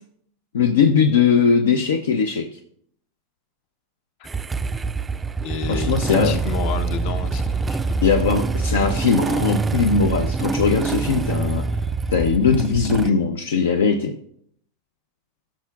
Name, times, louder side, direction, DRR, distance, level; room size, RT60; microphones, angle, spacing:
voice 1, 0.5-2.4 5.7-6.4 8.0-11.6 12.1-14.1, left 5 dB, 75° left, 6 dB, 0.6 m, -19 dB
Motorcycle / Engine starting, 4.3-13.1, right 4 dB, 15° right, 0.3 m, -25 dB
voice 2, 5.4-8.0, left 7 dB, 55° left, 9 dB, 0.9 m, -31 dB
14.0 x 6.0 x 2.4 m, 0.67 s
hypercardioid pair, 100°, 0 cm